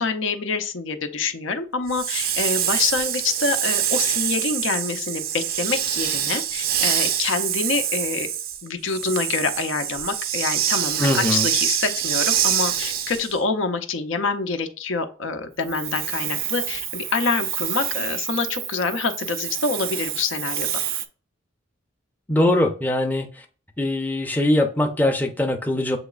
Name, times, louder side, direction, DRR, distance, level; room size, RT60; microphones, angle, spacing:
voice 1, 0.0-8.3 8.6-20.7, left 4 dB, 75° left, 8 dB, 0.6 m, -26 dB
Hiss, 1.9-13.4 15.6-21.0, right 10 dB, 50° right, 0.4 m, -26 dB
voice 2, 11.0-11.5 22.3-23.3 23.8-26.0, left 1 dB, 10° left, 3 dB, 0.5 m, -21 dB
6.9 x 3.0 x 2.4 m, 0.37 s
head